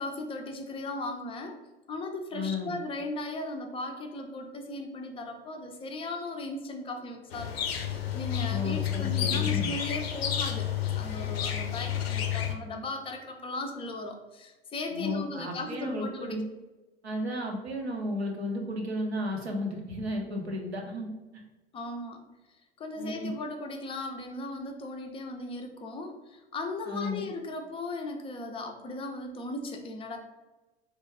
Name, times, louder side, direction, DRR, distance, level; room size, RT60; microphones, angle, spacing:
voice 1, 0.0-1.6 1.9-10.7 10.9-16.4 21.7-22.2 22.8-30.2, left 2 dB, 20° left, 4 dB, 0.4 m, -37 dB
voice 2, 2.3-2.7 8.5-9.7 14.9-16.4 17.0-21.1 21.3-21.4 23.0-23.3 26.9-27.2, left 1 dB, 90° right, 1 dB, 0.7 m, -33 dB
sound 1, 7.3-12.5, left 10 dB, 75° left, 0.5 m, -30 dB
3.2 x 2.2 x 3.3 m, 1.1 s
figure-of-eight pair, 80°, 31 cm